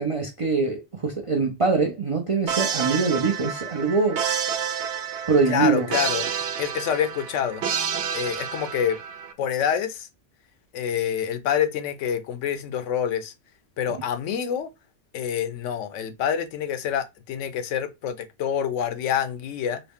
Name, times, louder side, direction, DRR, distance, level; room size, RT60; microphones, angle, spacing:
voice 1, 0.0-4.2 5.3-5.9, right 4 dB, 45° right, 0.4 m, -23 dB
sound 1, 2.5-9.3, right 8 dB, 70° right, 0.8 m, -29 dB
voice 2, 5.5-6.2 6.6-7.6 8.1-9.0 9.4-10.1 10.7-13.3 13.8-14.7 15.1-19.8, left 8 dB, 80° left, 0.9 m, -27 dB
3.8 x 2.0 x 3.5 m
omnidirectional pair, 1.2 m